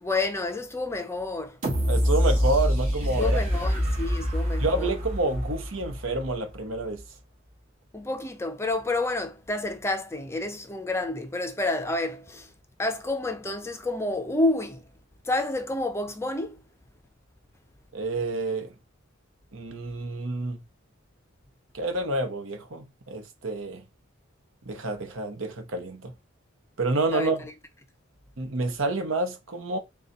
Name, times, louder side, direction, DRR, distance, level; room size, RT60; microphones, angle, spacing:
voice 1, 0.0-1.6 3.2-4.9 7.9-12.5 12.8-14.8 15.2-16.6 27.1-27.3, left 2 dB, 15° left, 0.5 m, -29 dB
sound 1, 1.6-6.5 7.0-7.1, equal, 45° right, 1.5 m, -25 dB
voice 2, 1.9-3.4 4.6-7.0 17.9-18.7 19.5-20.6 21.7-23.8 24.7-26.1 26.8-27.4 28.4-29.8, right 2 dB, 75° right, 0.9 m, -28 dB
3.9 x 2.3 x 3.9 m
head